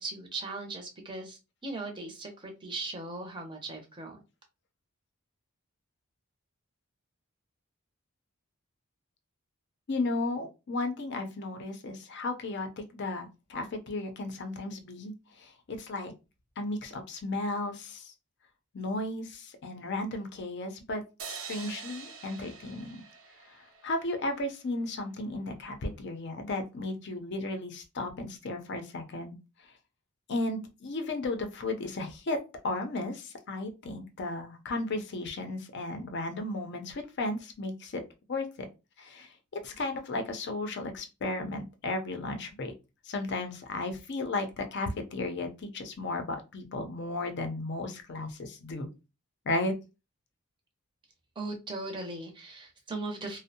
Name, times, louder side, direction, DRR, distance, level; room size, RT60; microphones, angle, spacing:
voice 1, 0.0-4.2 51.4-53.4, right 2 dB, 20° right, 3 dB, 0.6 m, -38 dB
voice 2, 9.9-16.1 16.6-18.1 18.7-23.0 23.5-29.4 30.3-32.4 32.6-38.0 38.3-38.5 39.0-39.3 39.6-42.7 43.0-48.9 49.5-49.7, left 2 dB, 50° left, 6 dB, 0.5 m, -34 dB
sound 1, 21.2-24.5, right 6 dB, 65° right, 0.5 m, -45 dB
2.5 x 2.0 x 2.6 m, 0.28 s
head